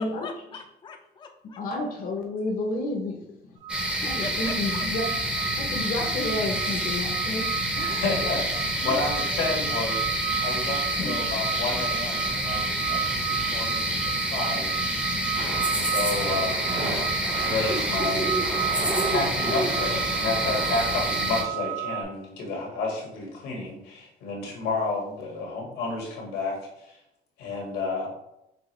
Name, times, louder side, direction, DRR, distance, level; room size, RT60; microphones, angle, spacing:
voice 1, 0.0-1.6 4.0-4.9 7.8-9.3, left 4 dB, 30° left, 4 dB, 0.5 m, -40 dB
voice 2, 1.6-3.6 4.0-5.1 5.6-7.5 11.0-11.2, left 2 dB, 55° left, 1 dB, 0.8 m, -30 dB
sound 1, 3.6-22.0, right 10 dB, 50° right, 1.1 m, -33 dB
sound 2, 3.7-21.4, right 1 dB, 5° right, 0.7 m, -28 dB
voice 3, 7.7-8.4 8.8-14.7 15.7-16.7 17.4-18.3 19.1-27.0 27.4-28.1, left 3 dB, 90° left, -1 dB, 1.6 m, -31 dB
sound 3, 15.3-21.0, right 1 dB, 70° right, 1.6 m, -35 dB
6.0 x 2.5 x 3.1 m, 0.83 s
cardioid pair, 110°, 17 cm